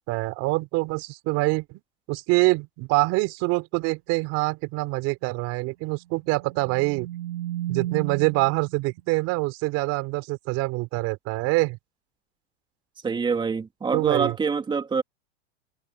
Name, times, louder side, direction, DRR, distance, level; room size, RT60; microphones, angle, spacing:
voice 1, 0.1-1.6 2.1-7.1 7.7-11.8 13.9-14.3, right 23 dB, 50° right, 4.7 m, -25 dB
sound 1, 6.2-8.8, right 13 dB, 80° right, 7.6 m, -33 dB
voice 2, 13.0-15.0, right 5 dB, 15° right, 2.6 m, -25 dB
supercardioid pair, 125°, 32 cm